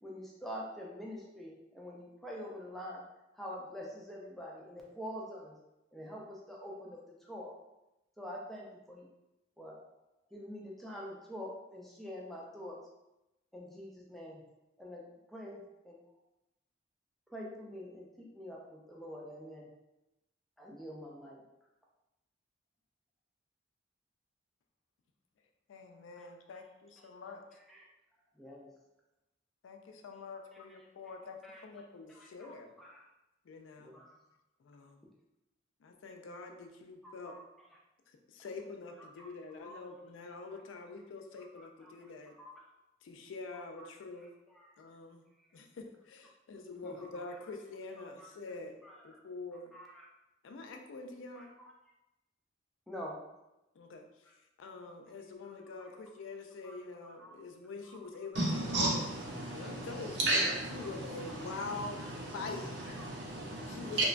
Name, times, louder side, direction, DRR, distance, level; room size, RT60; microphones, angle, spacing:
voice 1, 0.0-3.0 3.3-5.6 5.9-7.5 8.2-9.1 9.6-9.8 10.3-12.8 13.5-14.4 14.8-15.0 15.3-16.0 17.3-19.7 20.6-21.4 26.2-26.3 27.7-27.9 28.4-28.7 30.7-30.8 31.4-31.6 32.1-33.0 33.8-34.1 37.0-37.4 39.0-39.3 39.6-39.8 41.8-42.1 42.4-42.5 43.8-43.9 44.5-44.7 46.8-47.3 48.2-48.3 48.8-49.2 49.7-50.1 51.4-51.7 52.9-53.2 54.3-54.4 55.8-55.9 56.6-56.7 57.0-57.3 57.8-58.0 59.4-59.5 61.3-61.4 63.0-63.1, equal, ahead, -3 dB, 0.3 m, -46 dB
voice 2, 25.7-27.4 29.6-32.7 33.5-33.9 34.6-35.0 35.8-37.3 38.3-42.3 43.0-44.3 44.8-45.2 45.5-48.7 49.0-49.7 50.4-51.5 53.8-54.0 54.6-59.0 59.5-62.0 62.3-62.8 63.7-64.0, left 3 dB, 85° left, 4 dB, 0.3 m, -45 dB
voice 3, 58.3-64.0, right 2 dB, 65° right, -3 dB, 0.7 m, -34 dB
2.9 x 2.2 x 2.4 m, 0.95 s
head